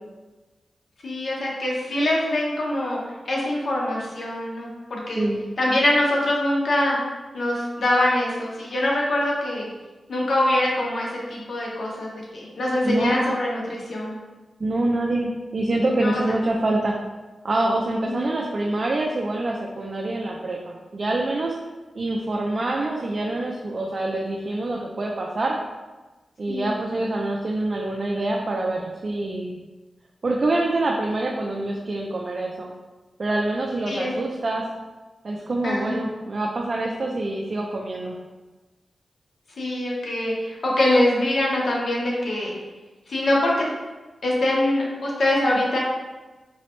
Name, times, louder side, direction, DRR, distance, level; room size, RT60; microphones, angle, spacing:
voice 1, 1.0-3.0 3.3-5.3 5.6-7.0 7.3-9.7 10.1-14.2 16.0-16.2 18.1-18.3 26.5-26.7 33.9-34.2 35.6-36.0 39.6-42.6 43.1-43.7 44.2-45.8, left 1 dB, 70° left, -3 dB, 0.8 m, -23 dB
voice 2, 12.8-13.2 14.6-16.9 17.4-21.6 22.0-25.6 26.4-29.6 30.2-32.7 33.2-34.6 35.2-38.2, right 2 dB, 55° right, -1 dB, 0.3 m, -25 dB
3.8 x 2.0 x 2.9 m, 1.2 s
wide cardioid pair, 75°, 0 cm